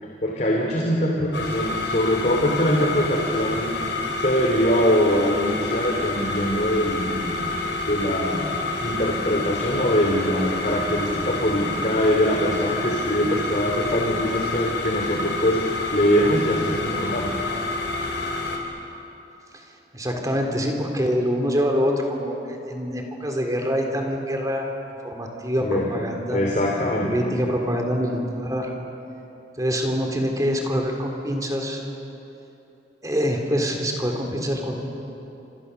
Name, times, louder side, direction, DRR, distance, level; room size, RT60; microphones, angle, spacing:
voice 1, 0.0-7.6 7.9-17.3 25.6-25.9 26.3-27.2, equal, 45° left, -1 dB, 3.0 m, -23 dB
sound 1, 1.3-18.6, left 3 dB, 85° left, 4.3 m, -28 dB
voice 2, 19.9-24.7 25.0-26.4 27.0-28.7 29.6-31.8 33.0-34.8, equal, 20° right, 2 dB, 3.6 m, -25 dB
28.5 x 27.0 x 7.0 m, 3.0 s
head